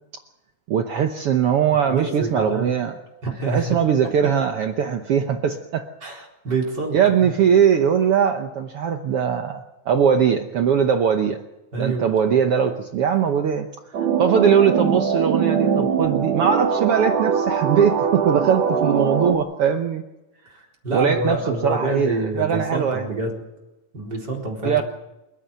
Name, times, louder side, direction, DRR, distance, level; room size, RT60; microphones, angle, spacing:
voice 1, 0.7-3.0 3.5-5.9 6.9-11.4 11.8-13.7 14.2-20.0 20.9-23.1 24.6-24.8, right 7 dB, 75° right, 6 dB, 1.3 m, -20 dB
voice 2, 1.9-2.7 3.2-3.8 6.0-7.3 11.7-12.1 20.8-23.3 23.9-24.8, right 3 dB, 30° right, -1 dB, 4.7 m, -26 dB
sound 1, 13.9-19.4, right 7 dB, 60° right, 2.6 m, -22 dB
28.5 x 9.8 x 9.3 m, 0.99 s
omnidirectional pair, 3.9 m